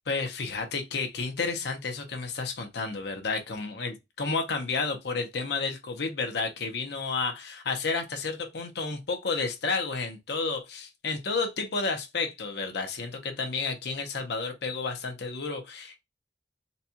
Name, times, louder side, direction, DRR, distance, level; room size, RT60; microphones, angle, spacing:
voice 1, 0.1-16.0, left 4 dB, 65° left, 0.7 m, -31 dB
4.1 x 2.3 x 2.7 m
head